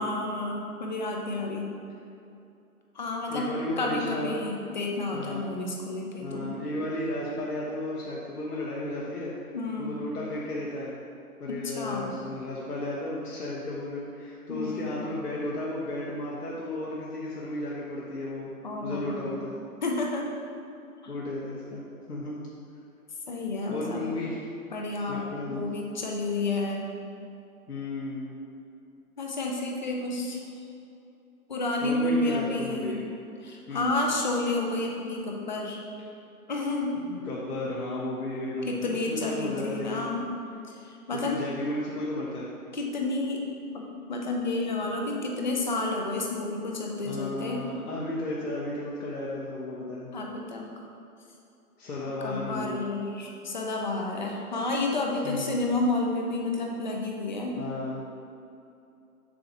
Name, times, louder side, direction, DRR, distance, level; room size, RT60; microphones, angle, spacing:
voice 1, 0.0-1.8 2.9-3.5 3.8-6.5 9.5-10.0 11.5-12.2 14.5-14.9 18.6-19.2 19.8-20.3 21.0-21.1 23.3-24.0 24.7-26.9 29.2-30.4 31.5-33.0 33.4-35.8 36.5-36.9 38.7-40.2 40.7-41.4 42.7-43.4 43.7-47.7 50.1-50.8 52.2-57.6, left 2 dB, 30° left, 0 dB, 0.6 m, -30 dB
voice 2, 3.3-4.5 5.1-5.5 6.2-9.3 9.8-11.0 11.4-19.6 21.1-21.8 22.1-22.4 23.7-24.4 25.1-25.6 27.7-28.3 31.8-33.0 33.7-33.9 36.9-40.1 41.1-42.5 47.1-50.1 51.8-52.8 55.2-55.5 57.6-58.0, left 1 dB, 90° left, -6 dB, 1.3 m, -34 dB
7.5 x 2.9 x 5.7 m, 2.7 s
hypercardioid pair, 165°, 45 cm